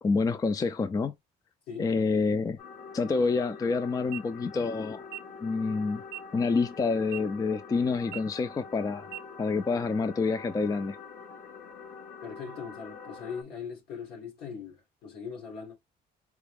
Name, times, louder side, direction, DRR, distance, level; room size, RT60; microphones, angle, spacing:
voice 1, 0.0-1.1 1.8-2.6 2.9-5.1 5.4-6.0 6.3-9.1 9.4-11.0, left 4 dB, 20° left, 0.4 m, -27 dB
sound 1, 2.6-13.4, left 5 dB, 55° left, 1.4 m, -45 dB
sound 2, 4.0-4.2 5.0-5.2 6.0-6.2 7.0-7.2 8.0-8.2 9.0-9.2, right 18 dB, 65° right, 0.5 m, -40 dB
voice 2, 12.2-15.7, left 6 dB, 70° left, 2.9 m, -40 dB
4.6 x 2.4 x 3.4 m
cardioid pair, 110°, 17 cm